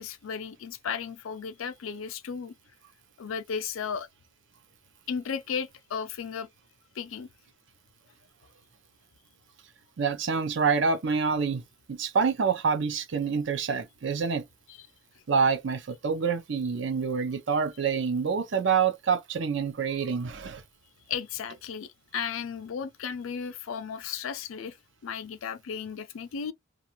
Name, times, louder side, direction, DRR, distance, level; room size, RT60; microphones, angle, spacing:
voice 1, 0.0-2.5 3.2-4.1 5.1-6.5 7.0-7.3 14.8-14.9 21.1-24.8 25.0-26.5, left 6 dB, 80° left, 0.4 m, -35 dB
voice 2, 10.0-11.6 11.9-14.4 15.3-20.6, right 5 dB, 60° right, 0.5 m, -27 dB
2.4 x 2.4 x 2.8 m
head